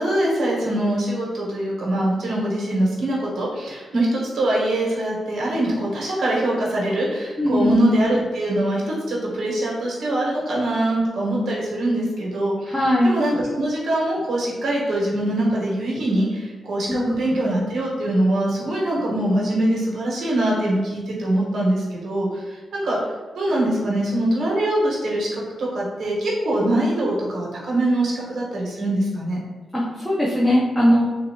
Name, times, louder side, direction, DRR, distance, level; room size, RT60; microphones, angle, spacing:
voice 1, 0.0-23.0 23.3-29.4, right 1 dB, 70° right, -4 dB, 1.1 m, -23 dB
voice 2, 7.4-7.7 12.7-13.2 16.9-17.2 29.7-31.1, equal, 5° left, -6 dB, 0.5 m, -19 dB
3.6 x 2.6 x 2.8 m, 1.4 s
cardioid pair, 105°, 0 cm